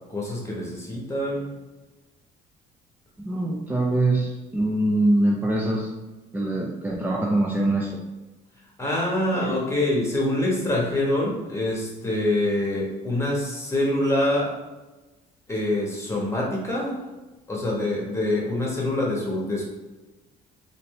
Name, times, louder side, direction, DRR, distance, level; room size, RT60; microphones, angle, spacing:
voice 1, 0.1-1.6 8.8-14.6 15.5-17.0 17.5-19.6, left 1 dB, 15° left, -3 dB, 1.3 m, -25 dB
voice 2, 3.2-5.9 6.3-8.0 9.3-9.5, right 1 dB, 10° right, -3 dB, 0.5 m, -23 dB
4.1 x 2.7 x 3.2 m, 1.1 s
cardioid pair, 110°, 17 cm